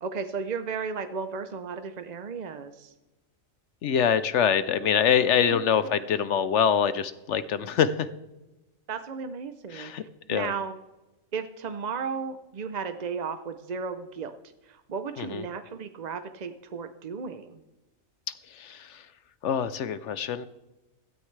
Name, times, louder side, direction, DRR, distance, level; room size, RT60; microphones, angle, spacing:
voice 1, 0.0-2.9 8.9-10.8 11.3-14.4 14.6-17.6, right 5 dB, 50° right, 9 dB, 0.5 m, -34 dB
voice 2, 3.8-8.1 9.7-10.0 10.3-10.5 15.2-15.4 18.5-19.1 19.4-20.5, left 8 dB, 65° left, 14 dB, 0.9 m, -25 dB
16.5 x 13.0 x 3.3 m, 1.0 s
omnidirectional pair, 1.4 m